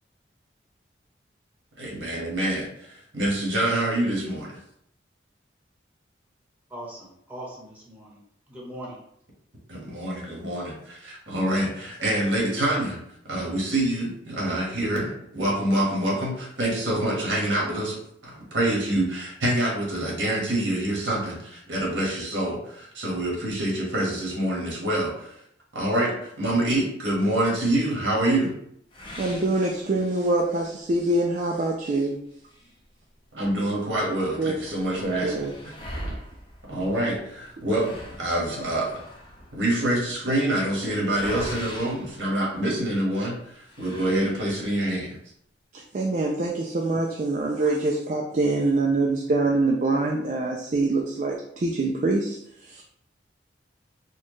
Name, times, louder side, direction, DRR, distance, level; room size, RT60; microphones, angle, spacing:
voice 1, 1.8-4.6 9.7-13.0 13.2-18.0 18.2-25.4 25.7-28.5 33.3-35.5 36.7-38.9 39.5-45.2, right 1 dB, 85° right, -3 dB, 1.4 m, -26 dB
voice 2, 6.7-8.2 8.5-9.0, right 1 dB, 10° right, -5 dB, 0.9 m, -40 dB
sound 1, 28.9-30.4 30.8-30.9 31.4-31.5 32.3-33.6 33.9-34.0 34.2-43.0 43.6-44.8, equal, 25° left, 0.6 m, -41 dB
voice 3, 29.2-32.2 34.4-34.6 35.2-35.5 36.0-36.2 45.7-52.8, right 2 dB, 40° right, 0 dB, 0.4 m, -25 dB
4.3 x 2.3 x 3.1 m, 0.72 s
head